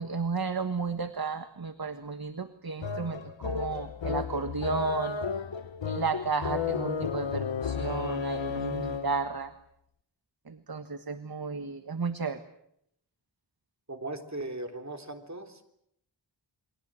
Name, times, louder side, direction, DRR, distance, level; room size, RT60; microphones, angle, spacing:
voice 1, 0.0-5.2 5.8-9.5 10.4-12.4, right 4 dB, 55° right, 9 dB, 1.5 m, -33 dB
sound 1, 2.8-9.3, left 6 dB, 85° left, 0.9 m, -33 dB
voice 2, 13.9-15.6, right 2 dB, 40° right, 4 dB, 3.6 m, -38 dB
29.0 x 23.0 x 7.6 m, 0.76 s
wide cardioid pair, 55°, 44 cm